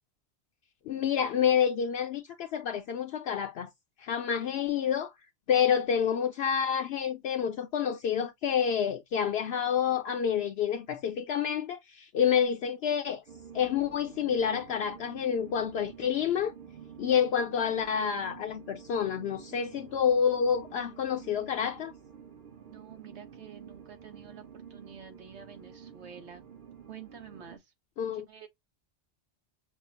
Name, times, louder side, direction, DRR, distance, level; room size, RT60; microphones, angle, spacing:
voice 1, 0.9-3.7 4.0-5.1 5.5-13.2 13.5-16.5 17.0-21.9 28.0-28.2, left 8 dB, 70° left, 0.8 m, -28 dB
sound 1, 13.3-27.6, right 7 dB, 50° right, 0.8 m, -50 dB
voice 2, 22.6-26.5 26.9-27.7 28.1-28.5, right 7 dB, 75° right, 1.3 m, -49 dB
5.9 x 2.0 x 2.5 m
omnidirectional pair, 1.2 m